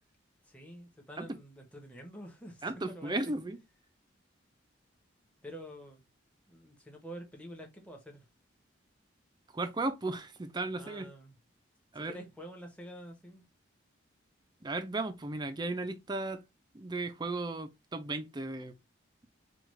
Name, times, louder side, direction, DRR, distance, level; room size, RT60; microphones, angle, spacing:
voice 1, 0.4-3.3 5.4-6.0 6.5-8.3 10.8-11.3 11.9-13.4, equal, 5° left, 0.9 m, -48 dB
voice 2, 2.6-3.6 9.5-11.1 11.9-12.2 14.6-16.4 16.7-18.7, right 2 dB, 20° right, 0.4 m, -35 dB
4.9 x 2.3 x 3.1 m
head